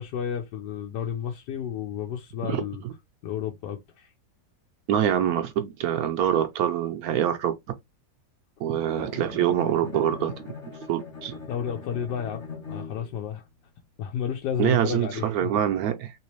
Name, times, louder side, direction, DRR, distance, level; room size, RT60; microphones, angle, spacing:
voice 1, 0.0-2.8 3.2-4.1 11.5-12.4 12.7-13.4 14.0-15.5, left 8 dB, 85° left, 1.2 m, -31 dB
voice 2, 2.4-2.9 4.9-7.5 8.6-10.5 10.9-11.4 14.6-16.1, right 10 dB, 70° right, 1.0 m, -25 dB
Bowed string instrument, 8.9-13.2, left 5 dB, 50° left, 1.4 m, -40 dB
3.1 x 3.0 x 3.1 m
omnidirectional pair, 1.8 m